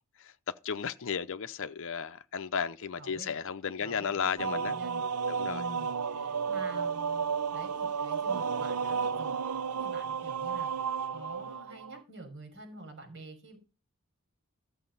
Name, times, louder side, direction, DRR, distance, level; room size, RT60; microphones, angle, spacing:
voice 1, 0.6-4.7 5.3-5.6, left 6 dB, 60° left, 0.6 m, -34 dB
voice 2, 3.0-3.4 3.8-5.0 5.4-13.6, right 2 dB, 55° right, 5.8 m, -47 dB
sound 1, 4.4-12.0, right 6 dB, 85° right, 0.6 m, -32 dB
13.5 x 6.8 x 5.5 m
head